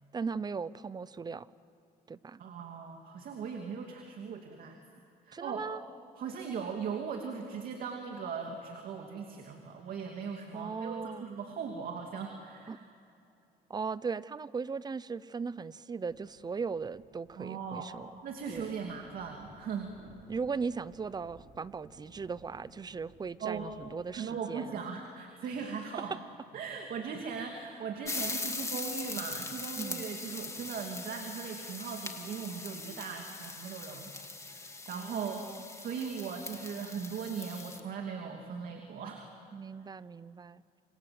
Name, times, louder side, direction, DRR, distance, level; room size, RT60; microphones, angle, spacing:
voice 1, 0.1-1.5 2.1-2.4 5.3-5.8 10.5-11.2 12.7-12.8 13.7-18.1 18.5-18.7 20.3-24.8 29.8-30.1 34.9-35.6 39.5-40.6, right 5 dB, 25° right, 18 dB, 0.7 m, -38 dB
voice 2, 2.4-4.8 5.2-5.6 6.2-12.8 17.4-17.9 18.2-20.0 23.4-23.7 24.1-26.2 26.5-34.1 34.4-35.4 35.7-39.3, right 6 dB, 60° right, 3 dB, 2.8 m, -39 dB
sound 1, 16.1-24.4, right 2 dB, 40° right, 5.7 m, -59 dB
sound 2, 28.0-37.8, left 3 dB, 15° left, 2.3 m, -41 dB
28.0 x 27.0 x 7.8 m, 2.8 s
cardioid pair, 110°, 17 cm